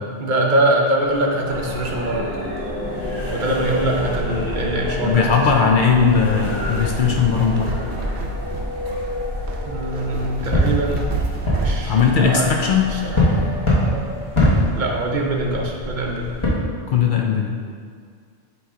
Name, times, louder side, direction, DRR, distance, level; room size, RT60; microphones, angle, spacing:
voice 1, 0.2-2.4 3.3-5.3 9.6-11.1 11.6-12.6 12.9-13.2 14.7-16.4, right 1 dB, 50° right, -1 dB, 0.8 m, -23 dB
sound 1, 1.0-15.1, equal, 10° right, 1.3 m, -31 dB
sound 2, 1.5-16.5, left 1 dB, 25° left, 1.3 m, -26 dB
voice 2, 5.0-7.7 11.8-12.9 16.9-17.5, left 6 dB, 60° left, 0 dB, 0.6 m, -18 dB
sound 3, 6.1-12.2, right 3 dB, 75° right, 0.9 m, -30 dB
8.2 x 3.1 x 3.6 m, 2.1 s
omnidirectional pair, 1.2 m